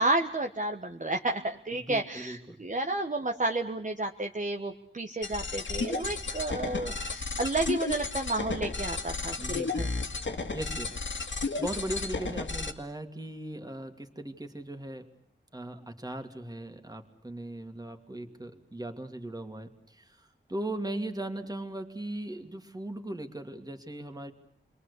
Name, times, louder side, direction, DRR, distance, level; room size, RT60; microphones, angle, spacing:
voice 1, 0.0-9.9, right 2 dB, 40° right, 3 dB, 1.4 m, -31 dB
voice 2, 1.7-2.6 9.4-9.9 10.2-10.9 11.6-15.1 15.5-24.3, right 1 dB, 20° right, 5 dB, 2.5 m, -38 dB
sound 1, 5.2-12.7, left 3 dB, 70° left, 2.1 m, -33 dB
29.0 x 22.5 x 8.3 m, 0.67 s
wide cardioid pair, 90°, 20 cm